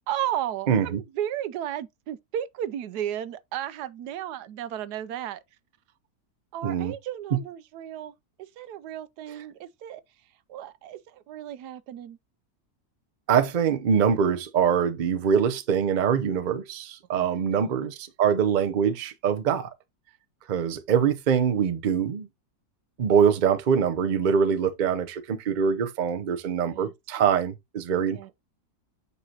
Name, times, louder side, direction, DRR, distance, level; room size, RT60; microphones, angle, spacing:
voice 1, 0.1-5.4 6.5-10.0 10.5-12.2 17.4-17.9 26.7-26.9 28.1-28.3, right 11 dB, 85° right, 1.2 m, -34 dB
voice 2, 0.7-1.0 6.6-6.9 7.3-7.4 13.3-19.7 20.5-22.3 23.0-28.3, right 7 dB, 50° right, 0.5 m, -24 dB
8.2 x 4.7 x 2.8 m
omnidirectional pair, 1.7 m